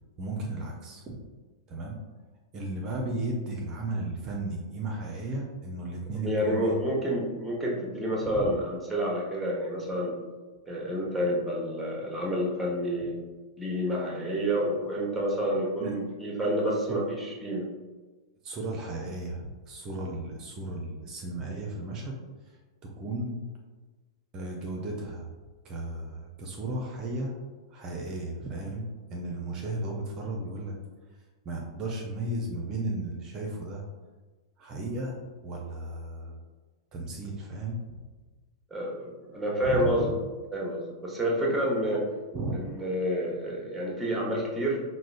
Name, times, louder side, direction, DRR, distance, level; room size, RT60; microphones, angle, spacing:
voice 1, 0.2-1.2 1.7-2.0 2.5-6.7 8.2-8.5 15.8-15.9 16.9-17.0 18.4-22.1 22.5-22.6 22.8-23.4 24.3-25.3 25.6-27.3 27.7-30.8 31.5-33.8 34.6-35.2 35.4-36.4 36.9-37.8 39.6-40.1 42.3-42.7, right 2 dB, 30° right, 0 dB, 0.5 m, -34 dB
voice 2, 6.2-10.1 10.7-13.1 13.6-17.7 38.7-40.1 40.5-42.1 42.5-44.8, equal, ahead, -3 dB, 0.8 m, -29 dB
4.8 x 2.0 x 2.4 m, 1.3 s
figure-of-eight pair, 100°, 2 cm